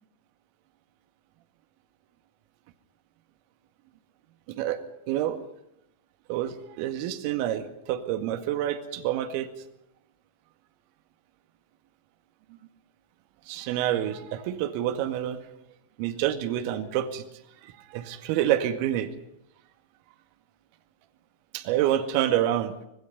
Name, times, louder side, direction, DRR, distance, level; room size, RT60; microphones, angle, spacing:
voice 1, 4.5-4.8 5.1-5.4 6.3-9.5 13.5-15.4 16.0-17.2 17.6-19.1 21.5-22.7, right 12 dB, 45° right, 7 dB, 1.9 m, -27 dB
26.0 x 19.0 x 5.6 m, 0.82 s
figure-of-eight pair, 90°, 0 cm